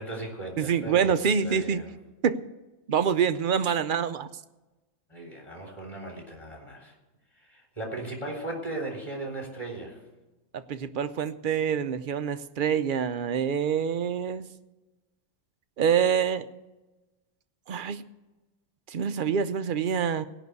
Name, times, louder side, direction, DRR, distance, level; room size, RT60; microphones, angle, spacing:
voice 1, 0.0-1.9 5.1-6.9 7.4-10.0, right 2 dB, 20° left, -1 dB, 3.6 m, -37 dB
voice 2, 0.6-1.8 2.2-2.4 2.9-4.3 10.5-14.4 15.8-16.5 17.7-18.0 18.9-20.2, right 7 dB, 55° right, 11 dB, 0.6 m, -26 dB
17.5 x 6.0 x 8.2 m, 1.1 s
omnidirectional pair, 1.4 m